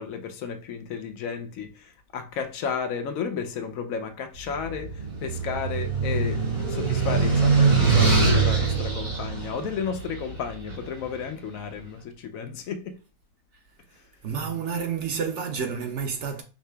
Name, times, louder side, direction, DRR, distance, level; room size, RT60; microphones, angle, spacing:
voice 1, 0.0-13.0, left 6 dB, 75° left, 1.0 m, -33 dB
sound 1, 4.6-10.9, right 4 dB, 85° right, 3.0 m, -23 dB
voice 2, 14.2-16.4, right 6 dB, 60° right, 0.9 m, -29 dB
4.8 x 2.8 x 3.3 m
omnidirectional pair, 1.5 m